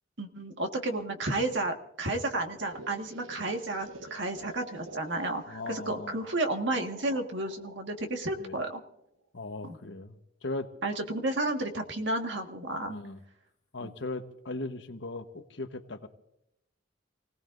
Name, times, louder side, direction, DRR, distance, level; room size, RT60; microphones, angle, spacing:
voice 1, 0.2-8.8 9.6-9.8 10.8-13.0 13.8-13.9, right 2 dB, 65° right, 4 dB, 1.7 m, -32 dB
sound 1, 2.3-9.2, right 2 dB, 90° right, 1.2 m, -49 dB
voice 2, 5.5-6.2 8.3-8.6 9.3-10.2 10.4-10.7 12.9-13.2 13.7-16.1, left 2 dB, 65° left, 7 dB, 1.2 m, -38 dB
29.0 x 18.0 x 2.6 m, 0.81 s
head